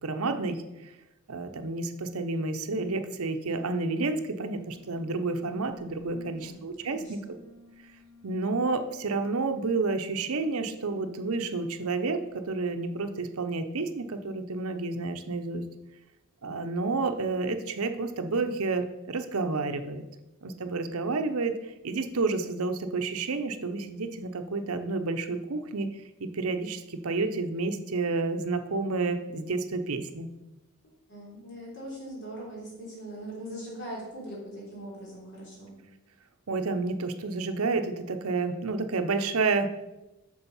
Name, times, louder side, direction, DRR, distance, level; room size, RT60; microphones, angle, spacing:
voice 1, 0.0-0.9 1.3-7.2 8.2-15.6 16.4-20.0 20.4-30.3 36.5-39.7, right 3 dB, 80° right, 8 dB, 0.7 m, -30 dB
sound 1, 4.5-12.7, left 3 dB, 85° left, 2.2 m, -57 dB
voice 2, 6.0-7.3 31.1-35.8, right 1 dB, 55° left, -4 dB, 3.3 m, -41 dB
7.1 x 6.3 x 5.5 m, 0.99 s
head